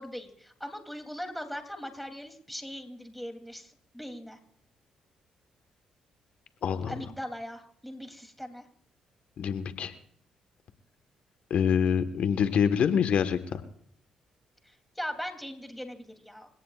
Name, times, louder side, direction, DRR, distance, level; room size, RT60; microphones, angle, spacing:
voice 1, 0.0-4.4 6.9-8.7 14.6-16.5, equal, 5° left, 6 dB, 3.1 m, -40 dB
voice 2, 6.6-6.9 9.4-9.9 11.5-13.6, left 7 dB, 65° left, 10 dB, 1.5 m, -26 dB
28.0 x 17.0 x 2.5 m, 0.65 s
hypercardioid pair, 50°, 2 cm